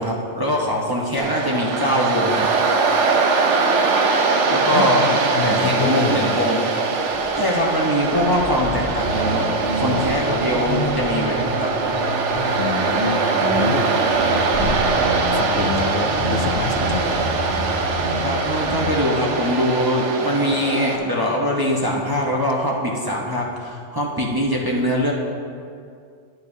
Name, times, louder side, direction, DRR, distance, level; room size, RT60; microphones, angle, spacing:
voice 1, 0.0-2.4 4.5-5.1 5.4-6.6 7.4-11.7 18.2-25.1, equal, 20° right, -3 dB, 0.9 m, -22 dB
Waves surf, 1.2-21.0, right 4 dB, 70° right, 1.1 m, -22 dB
voice 2, 4.7-6.4 12.6-13.9 14.6-14.8 15.3-17.4, left 6 dB, 75° left, 6 dB, 0.9 m, -27 dB
Wind / Car, 7.1-12.9 13.2-15.6, left 1 dB, 35° left, 1.3 m, -37 dB
sound 1, 8.9-19.0, equal, 35° right, 2.8 m, -28 dB
11.5 x 10.5 x 2.7 m, 2.3 s
omnidirectional pair, 1.3 m